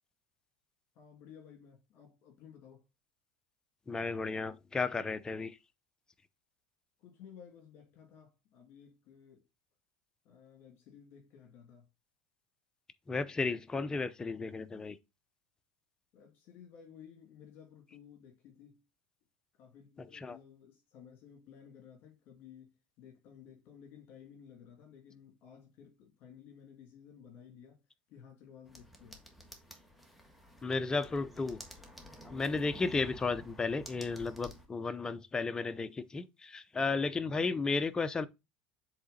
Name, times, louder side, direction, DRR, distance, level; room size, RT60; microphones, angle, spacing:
voice 1, 0.9-2.9 7.0-9.4 10.2-11.8 16.1-18.8 19.6-22.7 23.0-27.8 28.1-29.2 33.1-33.2 37.5-37.6, left 8 dB, 55° left, 2.7 m, -55 dB
voice 2, 3.9-5.6 13.1-15.0 20.1-20.4 30.6-31.6 32.2-38.3, left 4 dB, 15° left, 0.6 m, -34 dB
sound 1, 28.7-34.7, equal, ahead, 1.5 m, -52 dB
7.7 x 3.7 x 4.2 m
supercardioid pair, 120°, 5 cm